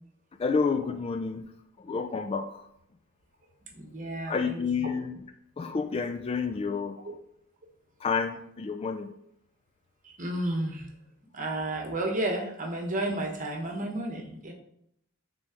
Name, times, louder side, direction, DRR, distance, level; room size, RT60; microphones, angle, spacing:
voice 1, 0.4-1.4 1.9-2.6 4.3-5.2 5.6-7.0 8.0-9.1, left 5 dB, 25° left, 7 dB, 0.3 m, -29 dB
voice 2, 3.7-4.9 7.0-7.1 10.0-10.9 11.3-14.5, right 1 dB, 35° right, 2 dB, 1.1 m, -32 dB
6.2 x 3.9 x 4.9 m, 0.75 s
head